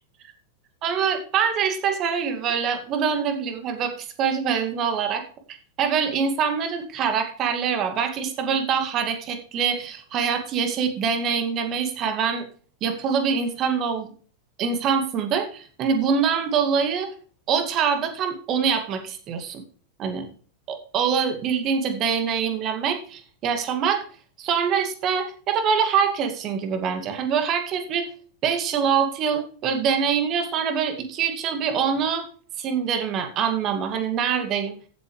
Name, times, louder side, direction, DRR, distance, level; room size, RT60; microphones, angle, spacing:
voice 1, 0.8-5.2 5.8-12.4 12.8-14.1 14.6-17.1 17.5-19.6 20.0-20.3 20.7-24.0 24.4-28.1 28.4-32.3 32.6-34.7, right 6 dB, 35° right, 7 dB, 2.2 m, -24 dB
14.5 x 8.2 x 3.3 m, 0.43 s
figure-of-eight pair, 90°, 0 cm